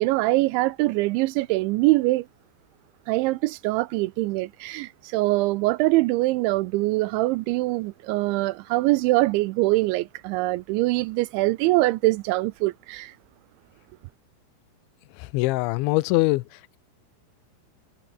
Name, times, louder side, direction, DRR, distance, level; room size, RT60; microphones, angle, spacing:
voice 1, 0.0-2.3 3.1-13.1, right 20 dB, 80° right, 2.7 m, -23 dB
voice 2, 15.2-16.4, left 20 dB, 80° left, 3.0 m, -22 dB
omnidirectional pair, 5.8 m